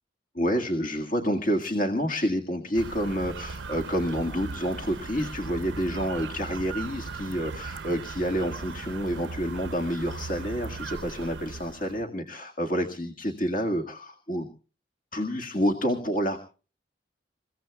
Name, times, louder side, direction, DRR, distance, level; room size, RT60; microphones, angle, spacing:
voice 1, 0.3-14.5 15.1-16.4, equal, 50° left, 4 dB, 1.8 m, -28 dB
sound 1, 2.7-12.0, right 4 dB, 90° right, 0.7 m, -38 dB
29.0 x 16.0 x 2.3 m, 0.36 s
head